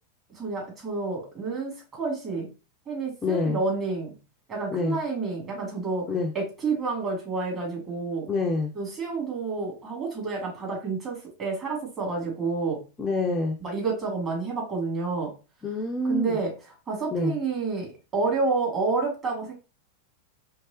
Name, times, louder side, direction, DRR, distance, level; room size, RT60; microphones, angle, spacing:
voice 1, 0.3-2.5 2.9-4.1 4.5-8.3 8.7-12.8 13.6-15.3 16.1-19.5, right 4 dB, 25° right, -2 dB, 2.4 m, -29 dB
voice 2, 3.2-3.6 4.7-5.0 6.1-6.3 8.3-8.7 13.0-13.6 15.6-16.4 17.1-17.3, left 3 dB, 15° left, 3 dB, 0.6 m, -26 dB
4.6 x 3.2 x 2.9 m, 0.32 s
figure-of-eight pair, 90°, 0 cm